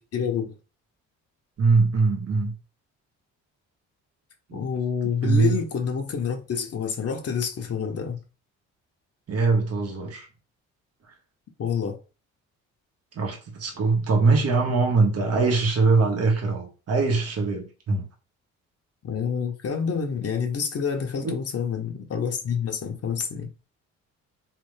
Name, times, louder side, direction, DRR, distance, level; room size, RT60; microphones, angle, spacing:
voice 1, 0.1-0.6 4.5-8.2 11.6-12.0 19.0-23.5, left 6 dB, 50° left, 1.0 m, -28 dB
voice 2, 1.6-2.5 4.5-4.6 5.2-5.6 9.3-10.3 13.1-18.1 21.2-21.3, right 4 dB, 55° right, 1.5 m, -22 dB
3.5 x 3.4 x 3.3 m
cardioid pair, 90°, 30 cm